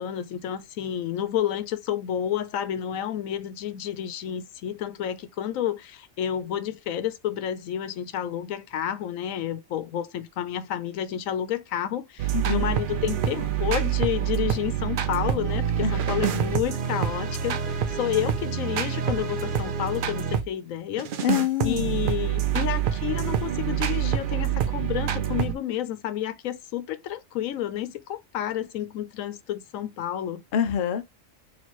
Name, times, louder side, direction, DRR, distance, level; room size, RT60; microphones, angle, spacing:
voice 1, 0.0-21.1 21.6-30.4, left 10 dB, 85° left, 1.0 m, -30 dB
sound 1, 12.2-20.5 21.0-25.5, right 9 dB, 65° right, 0.5 m, -26 dB
voice 2, 12.3-12.7 15.8-16.0 21.2-22.0 30.5-31.1, left 9 dB, 55° left, 0.6 m, -26 dB
4.3 x 3.0 x 3.0 m
omnidirectional pair, 1.4 m